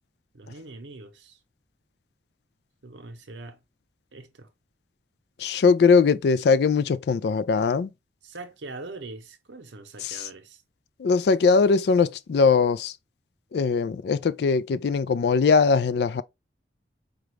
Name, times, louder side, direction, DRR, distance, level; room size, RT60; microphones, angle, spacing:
voice 1, 0.3-1.4 2.8-3.6 4.1-4.5 8.2-10.6, right 3 dB, 85° right, 0.7 m, -42 dB
voice 2, 5.4-7.9 10.0-10.3 11.0-12.9 13.5-16.2, left 5 dB, 65° left, 0.3 m, -21 dB
5.0 x 2.3 x 3.1 m
head